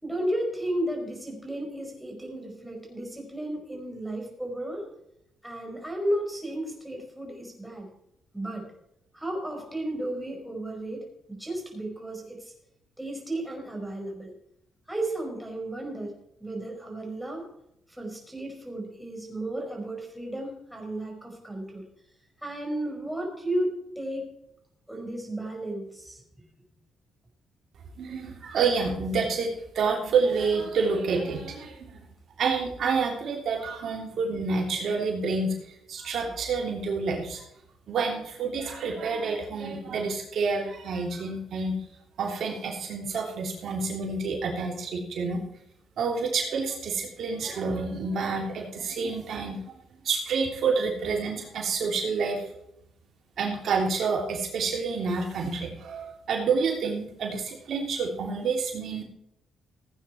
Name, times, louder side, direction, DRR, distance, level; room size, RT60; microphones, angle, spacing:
voice 1, 0.0-4.9 5.4-7.9 8.3-8.7 9.1-12.5 13.0-14.3 14.9-16.1 16.4-17.5 17.9-21.9 22.4-24.2 24.9-26.2, right 1 dB, ahead, 0 dB, 5.2 m, -33 dB
voice 2, 28.0-31.9 32.4-35.5 35.9-37.4 37.9-41.7 42.2-45.4 46.0-49.6 50.0-52.4 53.4-59.0, right 4 dB, 65° right, 1 dB, 3.2 m, -28 dB
17.0 x 9.0 x 4.5 m, 0.77 s
cardioid pair, 90°, 0 cm